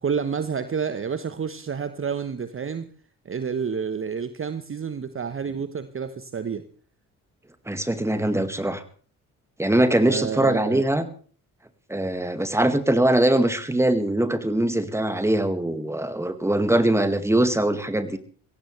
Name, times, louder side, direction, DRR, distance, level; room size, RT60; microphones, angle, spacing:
voice 1, 0.0-2.9 3.2-6.6 10.1-10.8 13.7-13.9, right 6 dB, 30° right, 12 dB, 1.1 m, -29 dB
voice 2, 7.7-8.8 9.6-11.1 11.9-18.2, right 1 dB, 5° right, 10 dB, 2.1 m, -22 dB
23.0 x 16.5 x 3.4 m, 0.42 s
figure-of-eight pair, 45°, 41 cm